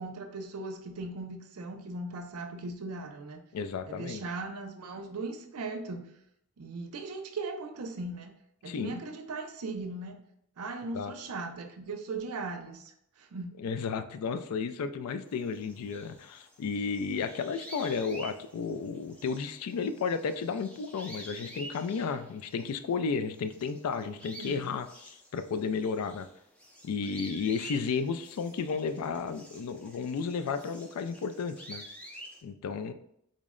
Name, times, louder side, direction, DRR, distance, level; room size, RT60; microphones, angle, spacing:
voice 1, 0.0-3.4 3.9-6.1 6.6-8.3 8.6-10.2 10.6-13.5 24.4-24.6, right 3 dB, 80° right, 6 dB, 0.5 m, -38 dB
voice 2, 3.5-4.2 8.7-9.0 10.9-11.1 13.6-26.3 26.8-31.8 32.4-32.9, left 5 dB, 80° left, 10 dB, 0.3 m, -33 dB
sound 1, 15.3-23.0 23.3-32.4, right 1 dB, 5° left, 0.4 m, -49 dB
3.8 x 2.1 x 3.6 m, 0.74 s
head